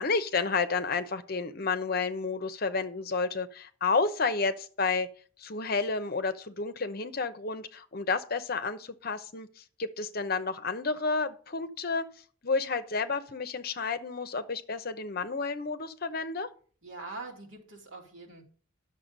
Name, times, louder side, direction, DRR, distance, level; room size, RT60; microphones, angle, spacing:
voice 1, 0.0-5.1 5.4-12.1 12.4-16.5, left 4 dB, 50° left, 0.8 m, -31 dB
voice 2, 16.8-18.4, right 3 dB, 75° right, 2.8 m, -43 dB
10.5 x 6.8 x 5.3 m
head